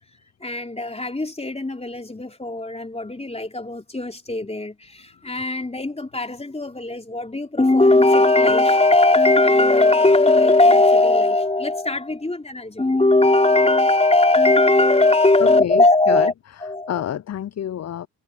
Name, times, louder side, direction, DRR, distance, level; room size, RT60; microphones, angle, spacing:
voice 1, 0.4-16.3 16.6-17.0, left 2 dB, 15° left, 3.6 m, -18 dB
voice 2, 15.4-16.3 16.9-18.1, left 10 dB, 35° left, 0.7 m, -27 dB
hypercardioid pair, 50°, 48 cm